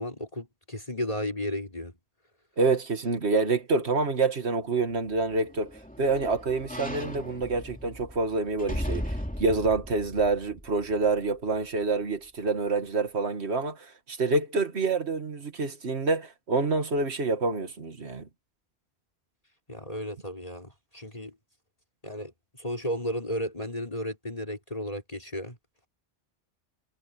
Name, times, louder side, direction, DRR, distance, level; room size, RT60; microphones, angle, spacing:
voice 1, 0.0-1.9 19.7-21.3 22.0-25.6, left 1 dB, 35° left, 4.5 m, -34 dB
voice 2, 2.6-18.3, right 3 dB, 80° right, 2.1 m, -27 dB
sound 1, 5.0-11.3 11.8-11.9, equal, 5° left, 2.6 m, -37 dB
omnidirectional pair, 1.1 m